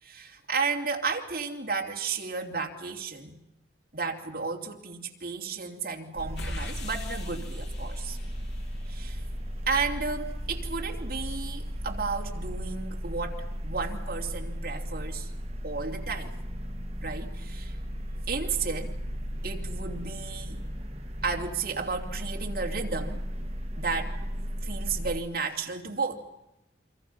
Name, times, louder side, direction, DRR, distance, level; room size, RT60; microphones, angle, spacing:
voice 1, 0.0-3.3 3.9-8.2 8.9-9.2 9.7-15.3 15.6-16.3 17.0-17.7 18.3-19.0 19.4-20.6 21.2-23.3 23.8-24.2 24.6-26.3, right 4 dB, 50° right, 1 dB, 2.9 m, -33 dB
sound 1, 6.2-25.2, equal, 35° right, 1.8 m, -35 dB
sound 2, 6.4-9.1, left 2 dB, 65° left, 2.6 m, -43 dB
29.0 x 23.5 x 5.6 m, 0.90 s
head